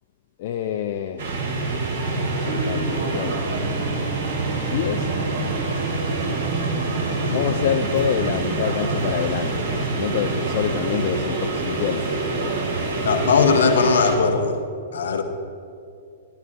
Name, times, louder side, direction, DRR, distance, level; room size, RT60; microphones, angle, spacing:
voice 1, 0.4-1.7 2.1-3.5 4.7-5.1 7.3-12.6, left 10 dB, 50° left, 6 dB, 0.4 m, -27 dB
sound 1, 1.2-14.2, right 3 dB, 60° right, 2.3 m, -25 dB
voice 2, 13.0-14.6 14.9-15.2, left 5 dB, 65° left, 6 dB, 1.1 m, -19 dB
16.0 x 11.5 x 2.5 m, 2.6 s
figure-of-eight pair, 105°, 0 cm